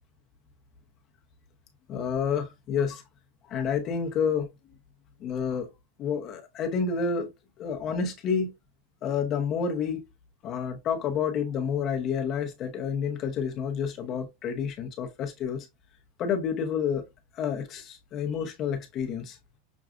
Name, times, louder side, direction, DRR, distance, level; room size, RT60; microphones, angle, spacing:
voice 1, 1.9-3.0 3.5-4.5 5.2-5.7 6.0-7.3 7.6-8.5 9.0-10.0 10.4-15.7 16.2-17.1 17.3-19.4, left 6 dB, 30° left, 0.8 m, -29 dB
6.1 x 2.3 x 2.4 m
supercardioid pair, 155°, 0 cm